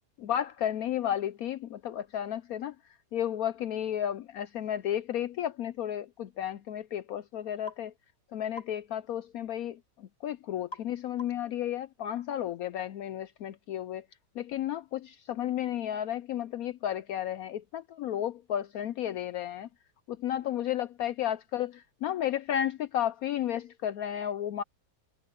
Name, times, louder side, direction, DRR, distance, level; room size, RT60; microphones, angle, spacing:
voice 1, 0.2-2.7 3.1-7.9 8.3-14.0 14.4-19.7 20.1-24.6, left 11 dB, 70° left, 0.9 m, -33 dB
sound 1, 7.7-7.9 8.6-8.8 10.7-10.9 11.2-11.5, left 2 dB, 40° left, 5.1 m, -44 dB
omnidirectional pair, 1.8 m